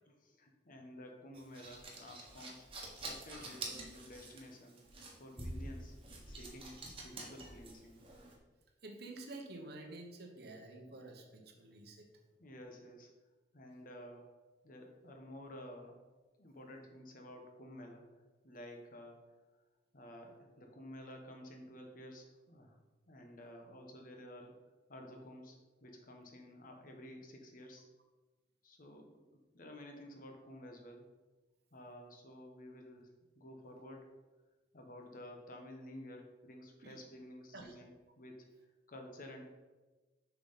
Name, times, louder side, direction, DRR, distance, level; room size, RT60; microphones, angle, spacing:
voice 1, 0.2-2.7 2.9-4.8 5.2-6.0 6.3-8.0 12.4-13.1 13.5-14.3 14.6-16.0 16.4-18.1 18.4-19.2 19.9-22.8 23.1-24.6 24.9-25.6 25.8-27.8 28.6-29.2 29.5-31.1 31.7-34.1 34.7-38.5 38.9-39.5, left 1 dB, 50° left, 2 dB, 1.1 m, -52 dB
sound 1, 1.3-8.3, right 2 dB, 30° right, 1.3 m, -47 dB
voice 2, 8.8-12.1 36.8-36.9 37.5-37.7, right 2 dB, 60° right, 3 dB, 1.0 m, -49 dB
6.9 x 5.7 x 4.2 m, 1.2 s
head